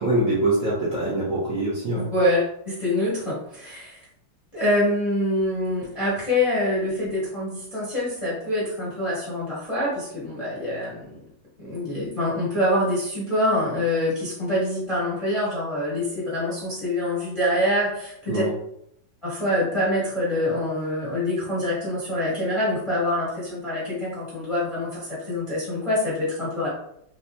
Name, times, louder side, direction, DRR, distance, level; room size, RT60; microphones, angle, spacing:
voice 1, 0.0-2.1 18.3-18.5, right 1 dB, 50° right, -8 dB, 1.0 m, -24 dB
voice 2, 2.0-4.1 4.5-11.2 11.6-18.4 19.2-26.7, left 1 dB, 20° left, -8 dB, 0.9 m, -25 dB
4.0 x 2.6 x 2.2 m, 0.73 s
omnidirectional pair, 2.2 m